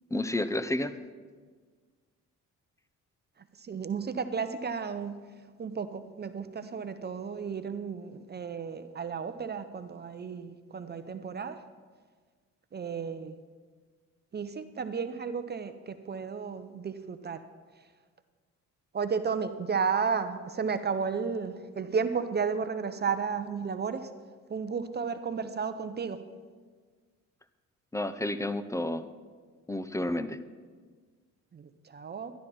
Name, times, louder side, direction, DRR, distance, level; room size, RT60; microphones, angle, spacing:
voice 1, 0.1-0.9 27.9-29.1 29.7-30.4, left 1 dB, 10° left, 12 dB, 0.6 m, -30 dB
voice 2, 3.6-5.2 5.6-11.6 12.7-13.4 14.3-17.4 18.9-24.1 24.5-26.2 31.5-32.3, right 5 dB, 35° right, 10 dB, 0.6 m, -33 dB
12.5 x 11.5 x 4.3 m, 1.5 s
cardioid pair, 90°, 30 cm